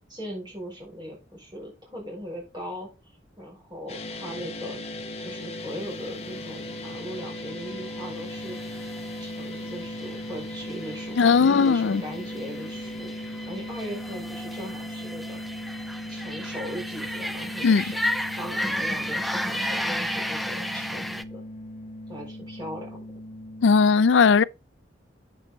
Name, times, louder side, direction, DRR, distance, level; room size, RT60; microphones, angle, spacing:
voice 1, 0.1-2.9 3.4-4.8 5.2-8.6 9.2-15.4 16.1-17.9 18.4-21.4 22.1-23.0, equal, 25° right, 5.9 m, -39 dB
sound 1, 3.9-23.8, left 1 dB, 35° left, 1.3 m, -38 dB
sound 2, 6.2-21.2, equal, ahead, 0.4 m, -34 dB
voice 2, 11.2-12.0 17.6-17.9 23.6-24.4, left 5 dB, 80° left, 0.4 m, -18 dB
8.7 x 7.7 x 4.0 m
head